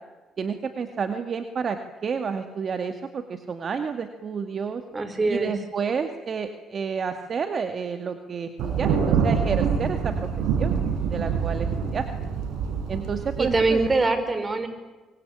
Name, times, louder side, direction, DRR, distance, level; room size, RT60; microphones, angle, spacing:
voice 1, 0.4-4.8 5.3-10.3 10.6-10.8 11.1-12.1 12.9-13.9, right 6 dB, 50° right, 7 dB, 2.2 m, -30 dB
voice 2, 4.9-5.5 13.4-14.7, right 3 dB, 30° right, 10 dB, 5.1 m, -23 dB
Thunder, 8.6-13.9, right 6 dB, 85° right, 6.0 m, -26 dB
25.0 x 24.0 x 8.9 m, 1.3 s
cardioid pair, 90°, 0 cm